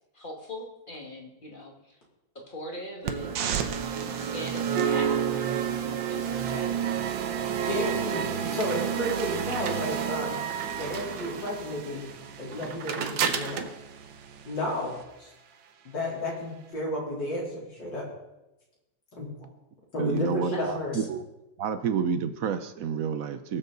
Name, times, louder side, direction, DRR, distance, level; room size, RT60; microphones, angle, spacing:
voice 1, 0.1-2.0 2.5-3.4 3.9-6.7 7.3-8.0 20.5-20.6 20.9-21.1, left 1 dB, 25° left, 1 dB, 2.1 m, -41 dB
sound 1, 3.0-15.0, right 8 dB, 80° right, 1.7 m, -30 dB
voice 2, 7.7-10.4 10.7-12.0 12.4-13.6 14.5-15.3 15.8-18.0 19.2-19.3 19.9-21.0, left 1 dB, 65° left, -4 dB, 4.4 m, -32 dB
voice 3, 20.0-21.2 21.6-23.6, right 6 dB, 60° right, 10 dB, 0.9 m, -29 dB
22.0 x 7.5 x 4.0 m, 0.94 s
omnidirectional pair, 2.1 m